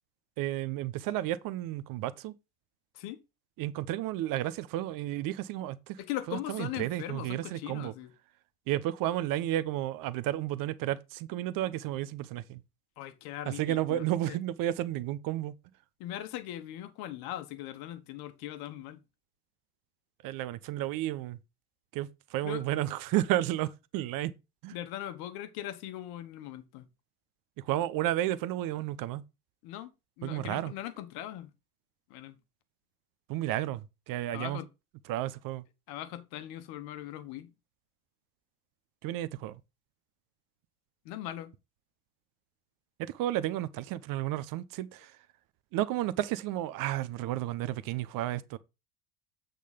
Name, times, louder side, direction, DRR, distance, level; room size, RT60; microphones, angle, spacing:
voice 1, 0.4-2.3 3.6-6.0 6.3-7.9 8.7-12.6 13.6-15.5 20.2-21.4 21.9-24.3 24.6-24.8 27.6-29.2 30.2-30.7 33.3-34.6 35.1-35.6 39.0-39.6 43.0-45.1 45.7-48.6, right 14 dB, 50° right, 0.8 m, -32 dB
voice 2, 6.0-8.1 13.0-14.4 16.0-19.0 22.4-22.6 24.7-26.9 29.6-29.9 30.2-31.5 32.1-32.4 34.3-34.7 35.9-37.5 41.0-41.5, left 13 dB, 60° left, 1.2 m, -40 dB
8.3 x 4.0 x 5.1 m
hypercardioid pair, 75°, 43 cm